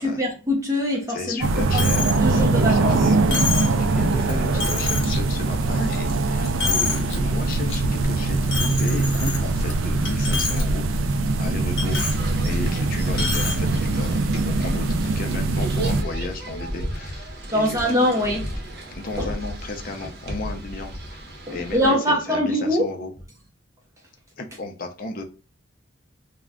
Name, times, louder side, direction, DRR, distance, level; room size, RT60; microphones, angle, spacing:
voice 1, 0.0-1.7 2.0-3.1 17.5-18.6 19.2-19.3 21.5-23.0, left 1 dB, 15° right, 0.6 m, -23 dB
voice 2, 1.1-3.2 3.8-10.8 11.4-12.1 12.4-18.0 18.9-23.1 24.4-25.2, left 2 dB, 45° left, 0.5 m, -34 dB
sound 1, 1.4-16.0, right 3 dB, 90° right, 0.4 m, -22 dB
Coin (dropping), 1.8-2.2 2.6-2.7 3.3-3.8 4.3-4.4 4.6-5.2 5.6-6.1 6.4-7.2 7.5-7.8 8.5-9.7 10.1-10.6 11.0-11.1 11.8-12.2 13.1-13.6, left 4 dB, 70° left, 0.9 m, -27 dB
sound 2, 11.8-21.9, right 1 dB, 55° right, 0.8 m, -34 dB
2.3 x 2.1 x 3.4 m
head